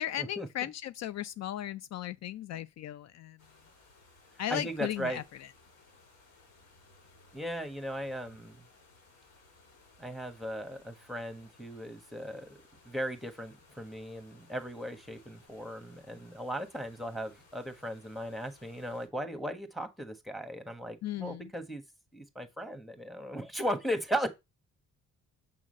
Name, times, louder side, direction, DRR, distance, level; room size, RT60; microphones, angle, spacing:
voice 1, 0.0-3.4 4.4-5.5 21.0-21.5, left 12 dB, 60° left, 0.4 m, -36 dB
sound 1, 3.4-19.1, left 3 dB, 80° left, 5.4 m, -61 dB
voice 2, 4.5-5.2 7.3-8.6 10.0-12.6 12.8-21.8 22.1-24.3, equal, ahead, 1.4 m, -37 dB
7.5 x 3.8 x 6.4 m
cardioid pair, 90°, 30 cm